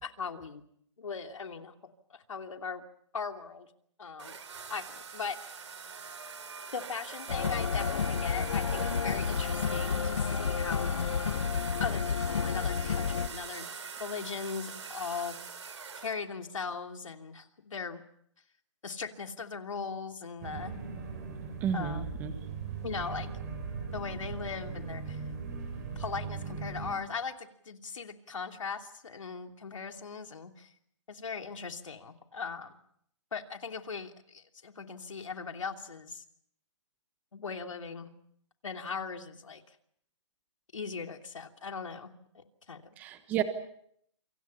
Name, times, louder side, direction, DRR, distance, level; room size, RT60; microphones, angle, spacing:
voice 1, 0.0-0.6 1.0-1.7 2.1-2.8 3.1-3.7 4.0-4.4 4.7-5.6 6.7-11.1 11.8-13.7 14.0-15.4 16.0-18.0 18.8-20.7 21.7-22.1 22.8-23.3 23.9-25.2 26.0-30.7 31.1-32.8 33.3-36.2 37.3-38.1 38.6-39.8 40.7-42.9, left 5 dB, 85° left, 5 dB, 3.0 m, -39 dB
sound 1, 4.2-16.2, right 6 dB, 65° right, 4.2 m, -43 dB
sound 2, 7.3-13.3, left 6 dB, 65° left, 1.5 m, -30 dB
sound 3, 20.4-26.9, right 5 dB, 30° right, 6.7 m, -39 dB
voice 2, 21.6-22.5 43.0-43.4, right 9 dB, 10° right, 9 dB, 1.3 m, -32 dB
28.0 x 25.5 x 5.7 m, 0.69 s
hypercardioid pair, 175°, 16 cm